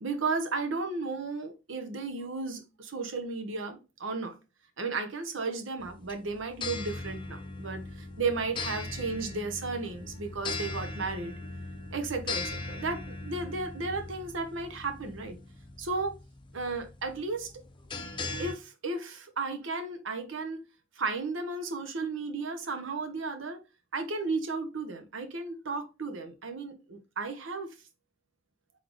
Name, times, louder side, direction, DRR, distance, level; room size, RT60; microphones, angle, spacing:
voice 1, 0.0-4.3 4.8-11.4 11.9-15.4 15.8-16.2 16.5-17.5 18.4-20.6 21.0-23.6 23.9-27.7, right 3 dB, 70° right, 0.9 m, -34 dB
sound 1, 5.8-18.5, left 3 dB, 25° left, 0.6 m, -40 dB
4.1 x 3.7 x 3.0 m
head